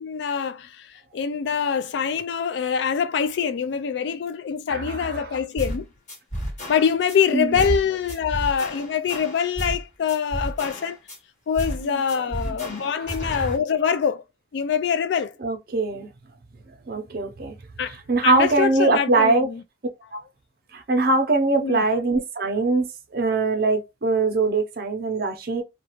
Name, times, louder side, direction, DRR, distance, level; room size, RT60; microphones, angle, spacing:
voice 1, 0.0-5.9 6.7-11.0 11.5-14.2 14.5-15.3 17.8-18.0 18.2-19.6 21.6-21.8, left 7 dB, 65° left, 0.3 m, -24 dB
voice 2, 4.7-5.4 7.3-7.6 13.0-13.1 15.4-16.1 16.9-17.5 17.9-19.5 20.1-20.2 20.7-25.6, right 3 dB, 50° right, 0.6 m, -22 dB
sound 1, 5.6-5.8 6.1-7.2 7.6-7.8 8.1-9.8 10.1-11.2 11.6-11.8 12.1-13.6, equal, 40° left, 1.2 m, -32 dB
2.3 x 2.3 x 2.9 m
head